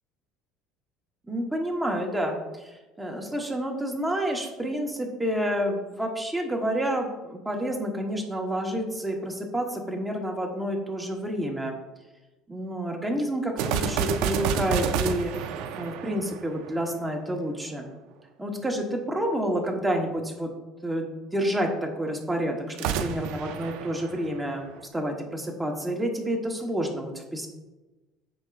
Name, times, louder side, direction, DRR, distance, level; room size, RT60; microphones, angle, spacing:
voice 1, 1.3-11.7 12.5-15.3 15.8-17.9 18.4-20.5 20.8-27.5, right 1 dB, 5° right, 1 dB, 1.3 m, -29 dB
sound 1, 13.6-17.0 22.7-24.8, right 7 dB, 75° right, 0.6 m, -29 dB
14.5 x 5.2 x 2.5 m, 1.1 s
cardioid pair, 150°, 0 cm